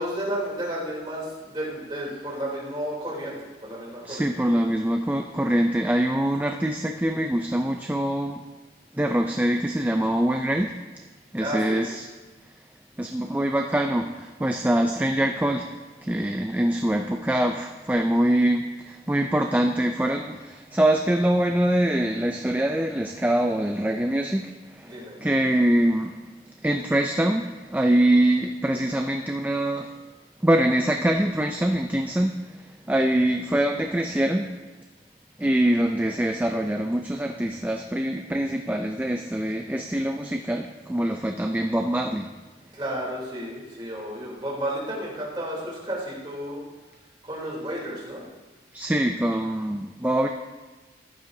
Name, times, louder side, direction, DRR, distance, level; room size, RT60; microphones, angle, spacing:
voice 1, 0.0-4.6 11.4-11.9 24.8-25.2 33.8-34.1 42.7-46.6 47.2-48.2, right 1 dB, 25° right, -5 dB, 3.2 m, -32 dB
voice 2, 4.1-8.4 8.9-10.7 11.3-12.0 13.0-15.7 16.0-24.9 25.2-26.2 26.6-29.9 30.4-34.5 35.4-42.3 48.7-50.3, right 1 dB, 10° right, 3 dB, 0.4 m, -24 dB
14.5 x 11.5 x 2.7 m, 1.3 s
head